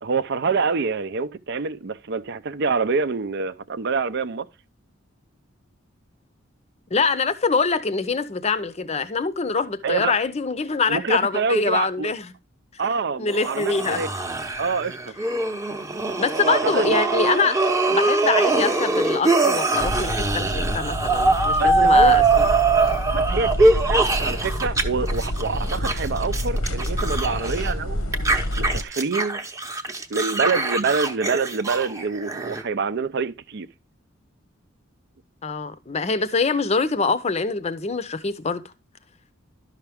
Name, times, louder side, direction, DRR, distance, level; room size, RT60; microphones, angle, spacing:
voice 1, 0.0-4.5 9.8-10.1 10.9-12.1 12.8-14.1 14.6-15.1 16.5-17.0 21.6-22.2 23.1-28.1 28.6-29.4 30.1-33.7, right 4 dB, 60° right, 0.5 m, -26 dB
voice 2, 6.9-12.3 13.2-14.0 16.2-17.6 17.9-22.5 35.4-38.7, left 4 dB, 35° left, 0.6 m, -24 dB
sound 1, 13.3-24.8 25.1-27.7 28.1-32.6, right 3 dB, 15° right, 0.8 m, -22 dB
sound 2, 19.8-28.8, equal, 90° left, 1.1 m, -28 dB
12.0 x 5.7 x 3.5 m
head